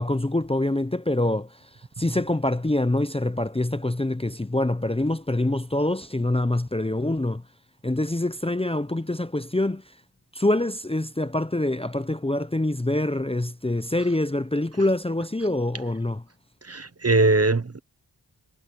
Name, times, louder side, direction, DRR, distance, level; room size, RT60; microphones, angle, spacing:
voice 1, 0.0-1.5 2.0-7.4 7.8-9.8 10.3-16.2, left 1 dB, 15° left, 0.8 m, -25 dB
voice 2, 16.7-17.8, right 3 dB, 35° right, 1.0 m, -21 dB
cardioid pair, 45°, 45 cm